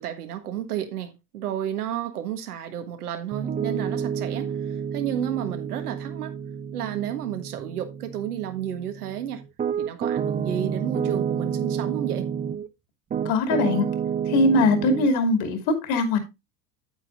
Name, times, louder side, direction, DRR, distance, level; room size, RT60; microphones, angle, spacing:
voice 1, 0.0-4.5 4.9-6.3 6.7-9.4 9.8-12.3, right 10 dB, 85° right, 1.5 m, -31 dB
Piano, 3.3-12.7 13.1-15.1, right 7 dB, 20° right, 0.5 m, -29 dB
voice 2, 13.2-13.9 14.3-16.2, left 2 dB, 60° left, 2.7 m, -21 dB
8.9 x 8.5 x 2.6 m
hypercardioid pair, 85°, 44 cm